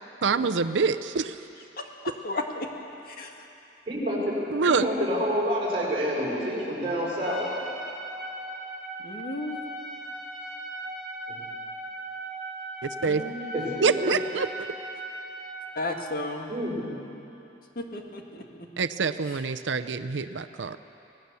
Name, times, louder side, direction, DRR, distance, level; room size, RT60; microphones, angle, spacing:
voice 1, 0.2-1.3 4.5-4.9 12.8-13.2 13.8-14.5 18.8-20.8, right 5 dB, 85° right, 10 dB, 0.6 m, -26 dB
voice 2, 2.2-2.7 3.1-3.3 9.0-9.6 13.0-14.0 15.8-16.5 17.8-18.7, left 2 dB, 50° left, 2 dB, 2.1 m, -34 dB
voice 3, 3.9-4.3 4.7-7.5 11.3-11.4 13.5-14.1 16.5-16.9, equal, 30° right, -5 dB, 5.9 m, -28 dB
Trumpet, 7.2-15.6, right 1 dB, ahead, 7.4 m, -38 dB
25.0 x 18.0 x 7.0 m, 2.9 s
head